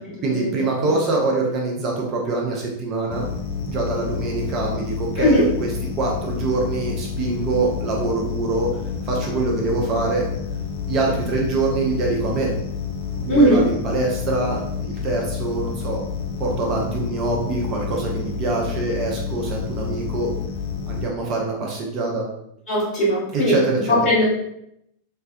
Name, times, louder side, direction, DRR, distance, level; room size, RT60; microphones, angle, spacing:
voice 1, 0.2-3.2 3.7-5.7 6.0-8.7 9.0-10.2 10.9-12.5 13.1-16.0 16.4-20.3 20.9-22.3 23.3-24.0, right 3 dB, 35° right, -1 dB, 0.5 m, -24 dB
sound 1, 3.1-21.0, left 6 dB, 50° left, 0.4 m, -29 dB
voice 2, 13.3-13.6 22.7-23.6 23.9-24.2, equal, 35° left, -7 dB, 1.3 m, -18 dB
2.6 x 2.1 x 2.2 m, 0.77 s
figure-of-eight pair, 90°, 0 cm